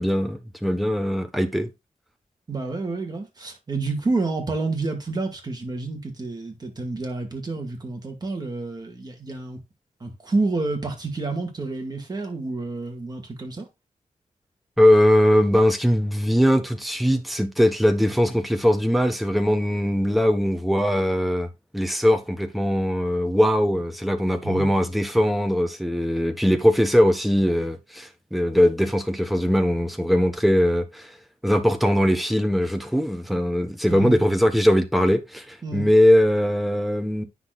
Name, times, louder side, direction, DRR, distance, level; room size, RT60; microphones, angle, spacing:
voice 1, 0.0-1.7 14.8-21.5 21.7-31.1 31.4-37.2, equal, ahead, 1.2 m, -20 dB
voice 2, 2.5-9.6 10.0-13.7 24.4-24.7 33.9-34.3 35.6-35.9, right 3 dB, 30° right, 2.1 m, -29 dB
9.6 x 6.1 x 2.4 m
wide cardioid pair, 140°, 13 cm